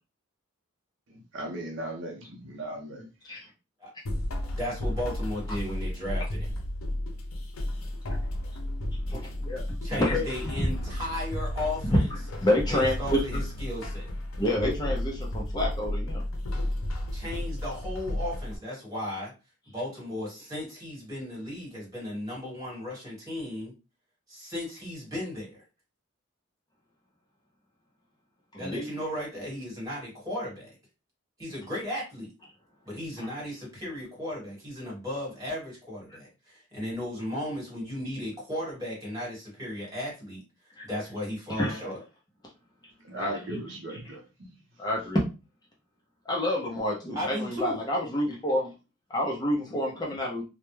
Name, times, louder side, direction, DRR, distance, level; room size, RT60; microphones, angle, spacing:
voice 1, 1.1-3.1 43.0-44.6, right 1 dB, 65° right, 2 dB, 0.6 m, -37 dB
sound 1, 4.1-18.6, left 1 dB, 85° left, 0.6 m, -33 dB
voice 2, 4.5-6.5 9.8-12.0 12.7-14.1 17.1-19.3 19.7-23.7 24.3-25.6 28.6-30.7 31.4-32.3 32.8-40.4 40.8-42.0 47.1-47.8, left 1 dB, 15° right, -5 dB, 1.4 m, -35 dB
voice 3, 9.1-10.2 11.9-13.2 14.4-16.2 28.5-28.8 33.2-33.3 40.8-40.9 41.5-41.8 43.1-43.6 43.9-44.0 44.8-45.2 46.3-48.7 49.1-50.4, left 1 dB, 20° left, -2 dB, 0.4 m, -28 dB
2.2 x 2.1 x 3.0 m, 0.29 s
head